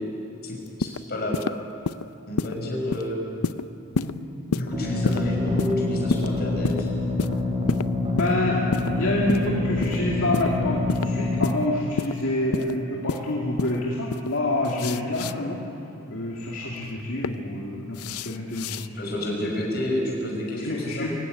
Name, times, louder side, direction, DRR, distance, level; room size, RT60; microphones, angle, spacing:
voice 1, 0.4-1.4 2.3-3.2 4.5-6.9 18.9-21.1, left 1 dB, 45° left, -1 dB, 5.9 m, -29 dB
sound 1, 0.7-1.0 1.3-1.5 1.9-2.0 2.4-2.5 2.9-3.1 3.4-3.6 3.9-4.1 4.5-4.7 5.0-5.2 5.6-5.7 6.1-6.3 6.6-6.8 7.2-7.4 7.7-7.9 8.2-8.3 8.7-8.9 9.3-9.5 9.8-10.0 10.3-10.5 10.9-11.1 11.4-11.6 12.0-12.1 12.5-12.7 13.1-13.2 13.6-13.8 14.1-14.3 14.6-15.3 16.8-17.3 17.9-18.9, left 4 dB, 85° left, 0.6 m, -27 dB
sound 2, 4.7-11.5, left 2 dB, 25° right, 3.9 m, -26 dB
voice 2, 8.1-15.6 16.1-18.8 20.6-21.1, left 1 dB, 60° left, -4 dB, 2.6 m, -27 dB
23.5 x 16.5 x 9.6 m, 2.8 s
head